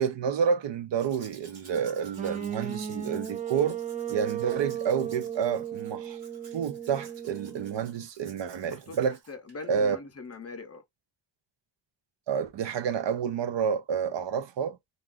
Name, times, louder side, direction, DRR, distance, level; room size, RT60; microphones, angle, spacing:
voice 1, 0.0-3.8 4.1-6.2 6.5-9.2 9.7-10.0 12.3-14.8, right 7 dB, 70° right, 0.6 m, -29 dB
Domestic sounds home sounds, 1.0-9.7 10.3-10.4, right 4 dB, 55° right, 1.3 m, -55 dB
sound 1, 2.2-8.0, right 8 dB, 20° right, 0.4 m, -36 dB
voice 2, 8.7-10.8, left 4 dB, 35° left, 0.5 m, -42 dB
2.4 x 2.3 x 3.5 m
wide cardioid pair, 125°, 44 cm